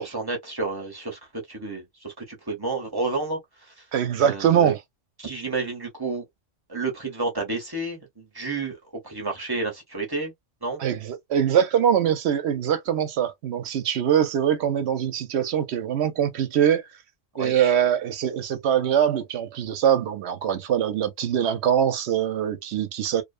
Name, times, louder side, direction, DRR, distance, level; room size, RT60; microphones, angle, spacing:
voice 1, 0.0-3.4 4.2-4.8 5.2-6.2 6.7-8.8 9.0-10.3 10.6-10.8 17.4-17.7, right 3 dB, 20° right, 0.8 m, -30 dB
voice 2, 3.9-4.8 10.8-16.8 17.4-23.2, right 9 dB, 65° right, 0.8 m, -23 dB
2.6 x 2.1 x 2.4 m
omnidirectional pair, 1.2 m